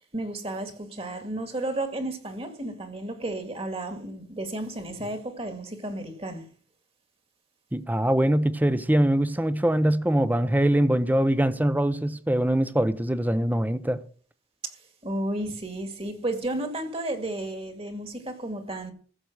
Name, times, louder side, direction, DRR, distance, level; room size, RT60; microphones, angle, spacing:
voice 1, 0.0-6.4 15.0-18.9, right 1 dB, 35° right, 2.1 m, -33 dB
voice 2, 7.7-14.0, right 1 dB, 10° right, 0.8 m, -23 dB
15.0 x 7.0 x 6.3 m
head